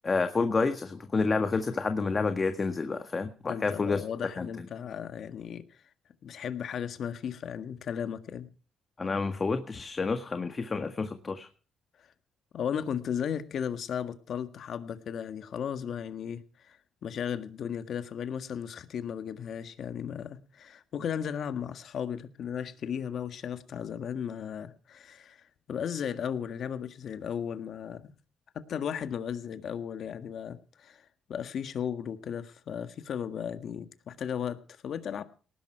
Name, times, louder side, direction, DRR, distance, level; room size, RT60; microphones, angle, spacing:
voice 1, 0.0-4.0 4.4-4.7 9.0-11.5, left 4 dB, 35° left, 7 dB, 1.7 m, -29 dB
voice 2, 3.5-5.8 6.2-8.5 12.5-16.8 17.0-28.1 28.5-35.2, left 8 dB, 65° left, 9 dB, 1.6 m, -35 dB
19.0 x 11.5 x 4.6 m, 0.39 s
cardioid pair, 90°, 0 cm